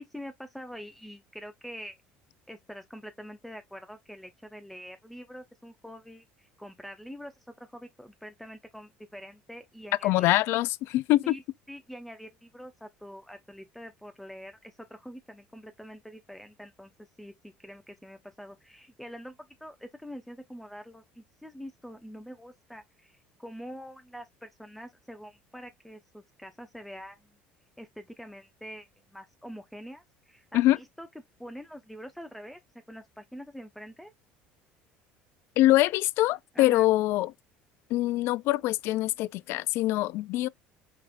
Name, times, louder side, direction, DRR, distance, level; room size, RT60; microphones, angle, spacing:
voice 1, 0.0-2.0 2.5-10.4 11.2-11.4 11.7-27.4 27.8-31.1 31.4-32.6 32.9-34.1 36.5-36.9, equal, 5° left, 0.8 m, -45 dB
voice 2, 10.0-11.3 30.5-30.8 35.6-37.3 37.9-40.5, left 16 dB, 65° left, 0.3 m, -24 dB
5.8 x 3.3 x 2.4 m
supercardioid pair, 85°, 5 cm